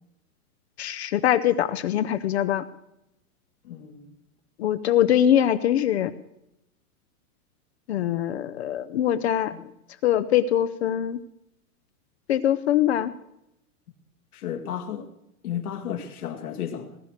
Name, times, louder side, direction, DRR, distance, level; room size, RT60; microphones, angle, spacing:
voice 1, 0.8-2.6 4.6-6.1 7.9-9.5 10.0-11.2 12.3-13.1, left 11 dB, 45° left, 12 dB, 0.7 m, -23 dB
voice 2, 3.6-4.1 9.2-9.6 14.3-15.1 15.4-16.9, left 9 dB, 75° left, 3 dB, 2.3 m, -33 dB
19.0 x 9.7 x 6.6 m, 0.82 s
supercardioid pair, 165°, 45 cm